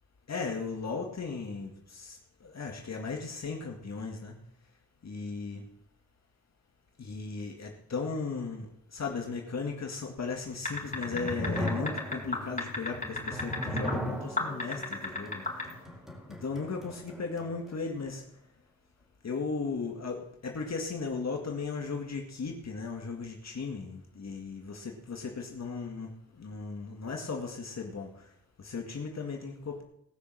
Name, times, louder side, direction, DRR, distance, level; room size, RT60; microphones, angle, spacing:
voice 1, 0.3-4.3 5.0-5.7 7.0-15.4 16.3-18.2 19.2-28.1 28.6-29.8, left 4 dB, 55° left, 1 dB, 2.1 m, -36 dB
sound 1, 10.6-13.9 14.4-15.7, left 2 dB, 25° left, 4.6 m, -32 dB
sound 2, 10.7-17.8, left 1 dB, ahead, 4.4 m, -38 dB
19.0 x 6.6 x 7.7 m, 0.75 s
wide cardioid pair, 95°, 32 cm